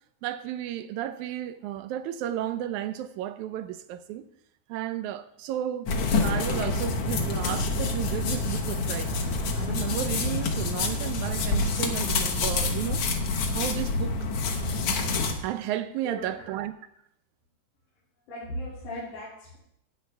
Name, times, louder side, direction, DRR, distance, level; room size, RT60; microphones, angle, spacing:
voice 1, 0.2-4.3 4.7-5.9 6.2-9.1 9.6-13.0 13.5-14.3 15.4-16.7, right 11 dB, 80° right, 2.0 m, -33 dB
sound 1, 5.9-15.3, left 3 dB, 60° left, 1.9 m, -27 dB
voice 2, 18.3-19.6, left 1 dB, 90° left, 4.2 m, -37 dB
12.5 x 9.1 x 3.4 m
omnidirectional pair, 3.4 m